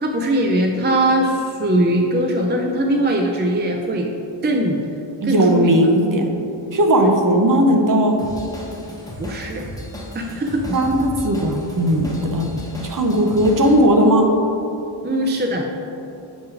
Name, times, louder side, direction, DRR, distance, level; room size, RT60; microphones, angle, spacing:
voice 1, 0.0-4.1 4.4-4.8 5.2-5.8 9.2-9.6 10.1-10.7 15.0-15.7, right 1 dB, 25° right, 2 dB, 0.4 m, -20 dB
voice 2, 5.2-6.3 6.7-8.2 10.7-12.5 12.8-14.3, right 1 dB, 40° right, 3 dB, 0.7 m, -17 dB
Drum kit / Drum, 8.2-13.8, equal, 5° left, 1.0 m, -34 dB
7.2 x 3.0 x 4.9 m, 2.7 s
wide cardioid pair, 70°, 50 cm